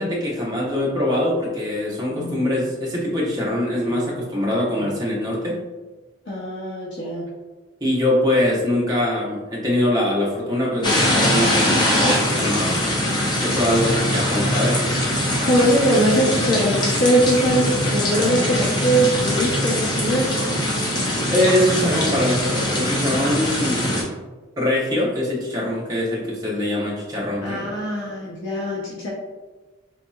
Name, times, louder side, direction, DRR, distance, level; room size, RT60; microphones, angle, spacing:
voice 1, 0.0-5.6 7.8-12.8 13.4-14.8 21.3-24.2 24.6-27.7, left 1 dB, 20° right, -4 dB, 0.7 m, -23 dB
voice 2, 2.1-2.4 6.3-7.3 15.4-20.5 27.4-29.1, right 1 dB, 75° left, -6 dB, 0.7 m, -21 dB
sound 1, 10.8-24.0, left 1 dB, 20° left, 0.5 m, -22 dB
4.0 x 2.8 x 2.3 m, 1.2 s
head